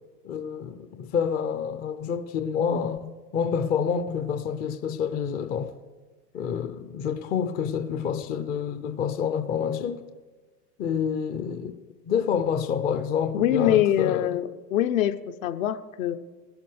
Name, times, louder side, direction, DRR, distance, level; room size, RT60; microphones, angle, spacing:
voice 1, 0.2-5.7 6.3-10.0 10.8-14.3, left 7 dB, 20° left, 0.5 m, -28 dB
voice 2, 13.3-16.2, left 11 dB, 55° left, 0.8 m, -24 dB
20.0 x 11.5 x 3.4 m
figure-of-eight pair, 90°, 49 cm